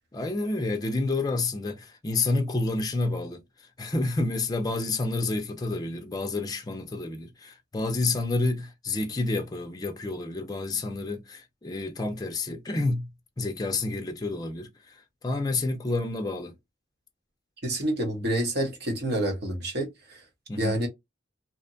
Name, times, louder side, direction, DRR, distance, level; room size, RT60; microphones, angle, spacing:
voice 1, 0.1-13.1 13.4-16.6 20.5-20.8, left 2 dB, 20° left, 0.4 m, -29 dB
voice 2, 17.6-20.2 20.6-20.9, right 1 dB, 55° right, 0.9 m, -28 dB
2.7 x 2.1 x 2.5 m
head